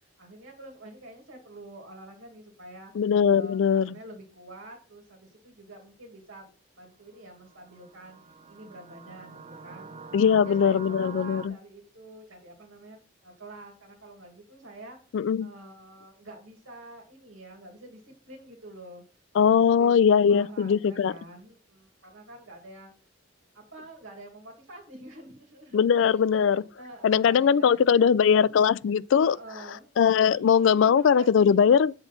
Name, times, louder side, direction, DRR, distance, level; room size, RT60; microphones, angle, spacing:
voice 1, 0.2-2.9 3.3-6.5 6.8-8.2 8.5-15.0 15.4-19.0 19.3-22.9 23.5-28.6 29.2-29.9 30.3-31.9, right 1 dB, 90° right, 2.1 m, -47 dB
voice 2, 3.0-3.9 10.1-11.5 15.1-15.5 19.4-21.1 25.7-26.6 27.0-29.4 30.0-31.9, left 7 dB, 65° left, 0.3 m, -20 dB
sound 1, 7.5-11.5, right 5 dB, 30° right, 0.6 m, -45 dB
8.0 x 3.9 x 5.7 m
head